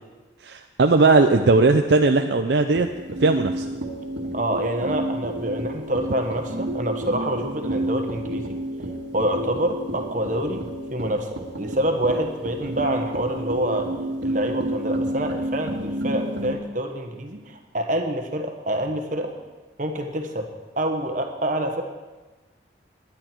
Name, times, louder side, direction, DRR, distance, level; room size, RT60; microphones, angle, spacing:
voice 1, 0.4-2.9 3.2-3.7, right 3 dB, 70° right, 6 dB, 0.6 m, -18 dB
sound 1, 2.7-16.6, right 1 dB, 85° right, 2.0 m, -30 dB
voice 2, 4.3-8.6 9.1-11.3 11.6-13.9 14.2-19.3 19.8-20.5 20.8-21.8, right 1 dB, 45° right, 5 dB, 1.5 m, -26 dB
19.0 x 11.0 x 4.6 m, 1.2 s
head